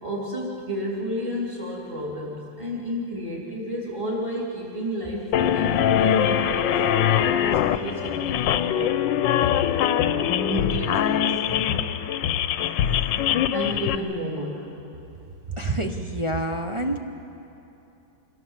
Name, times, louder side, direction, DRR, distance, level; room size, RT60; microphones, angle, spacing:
voice 1, 0.0-9.8 10.4-11.2 12.6-13.1 13.5-14.7, equal, 15° right, -5 dB, 3.4 m, -32 dB
sound 1, 5.3-14.0, left 9 dB, 90° left, 1.4 m, -22 dB
voice 2, 15.6-17.0, right 1 dB, 35° right, 3 dB, 0.5 m, -27 dB
26.0 x 17.5 x 7.4 m, 2.8 s
omnidirectional pair, 1.9 m